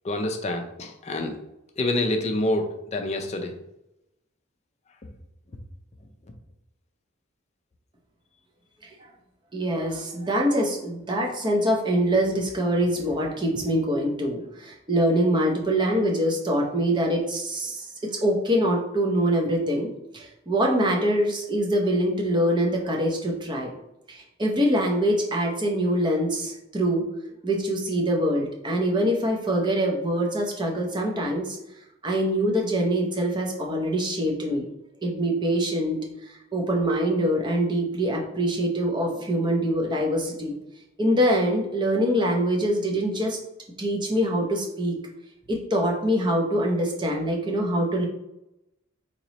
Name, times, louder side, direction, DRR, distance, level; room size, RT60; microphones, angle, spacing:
voice 1, 0.0-1.4 1.8-3.5, left 1 dB, 35° left, 4 dB, 0.5 m, -27 dB
voice 2, 9.5-23.7 24.1-27.1 27.4-31.6 32.0-34.6 35.0-36.0 36.3-40.5 41.0-43.4 43.8-45.0 45.5-48.1, equal, 20° right, 0 dB, 0.7 m, -24 dB
2.9 x 2.9 x 4.1 m, 0.88 s
head